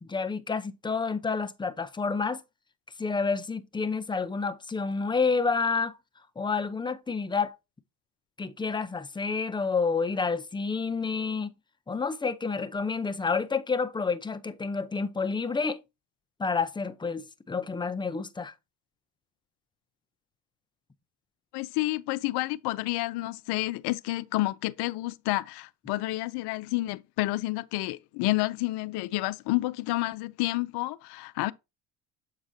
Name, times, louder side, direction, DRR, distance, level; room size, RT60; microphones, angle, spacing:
voice 1, 0.0-2.4 3.0-5.9 6.4-7.5 8.4-11.5 11.9-15.8 16.4-18.5, left 4 dB, 10° left, 0.6 m, -29 dB
voice 2, 21.5-31.5, left 19 dB, 60° left, 0.5 m, -30 dB
7.3 x 4.8 x 2.7 m
hypercardioid pair, 70°, 47 cm